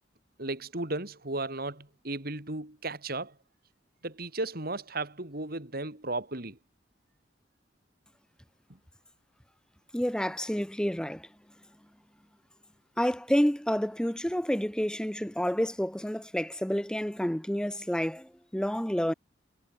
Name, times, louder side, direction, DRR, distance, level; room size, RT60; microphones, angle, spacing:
voice 1, 0.4-3.3 4.0-6.6, right 2 dB, 55° right, 3.3 m, -35 dB
voice 2, 9.9-11.3 13.0-19.1, equal, 5° left, 0.9 m, -29 dB
head